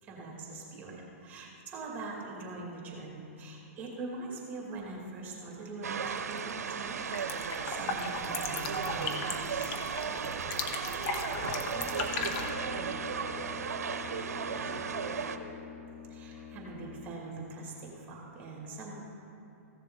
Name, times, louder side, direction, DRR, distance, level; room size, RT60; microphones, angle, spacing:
voice 1, 0.0-7.0 7.3-9.8 16.1-18.9, right 3 dB, 20° right, -2 dB, 2.4 m, -43 dB
sound 1, 5.8-15.4, right 6 dB, 85° right, 0.7 m, -35 dB
sound 2, 6.1-6.5 6.8-12.5, left 4 dB, 40° left, 0.9 m, -37 dB
voice 2, 11.3-15.7, left 2 dB, 55° left, 0 dB, 1.9 m, -48 dB
Brass instrument, 11.6-17.4, left 7 dB, 20° left, 0.5 m, -47 dB
15.5 x 6.8 x 3.8 m, 2.8 s
hypercardioid pair, 140°, 8 cm